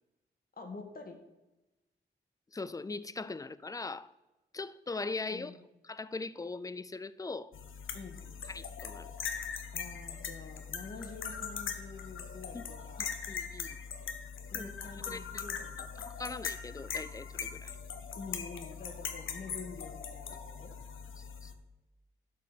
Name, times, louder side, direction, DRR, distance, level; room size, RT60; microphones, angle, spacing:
voice 1, 0.6-1.2 5.3-5.6 7.9-8.2 9.7-13.1 14.5-15.8 18.1-20.7, left 4 dB, 45° left, 3 dB, 2.0 m, -47 dB
voice 2, 2.5-4.1 4.5-5.5 5.8-7.5 8.5-9.1 12.5-12.6 13.0-13.8 14.5-14.7 15.1-15.4 16.0-17.7 21.4-21.5, left 3 dB, 15° left, 17 dB, 0.4 m, -40 dB
sound 1, 7.5-21.5, left 6 dB, 80° left, 1.1 m, -41 dB
12.0 x 5.6 x 6.9 m, 1.0 s
wide cardioid pair, 115°, 20 cm